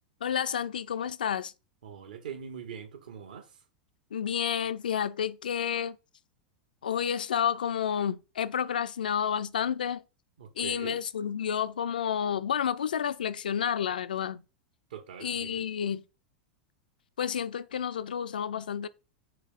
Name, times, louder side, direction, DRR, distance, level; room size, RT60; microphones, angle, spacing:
voice 1, 0.2-1.5 4.1-6.0 6.8-10.0 10.6-14.4 15.2-16.0 17.2-18.9, left 8 dB, 75° left, 0.4 m, -30 dB
voice 2, 1.8-3.5 10.4-11.0 14.9-15.7, right 8 dB, 70° right, 1.0 m, -42 dB
4.3 x 3.4 x 3.6 m
figure-of-eight pair, 90°, 5 cm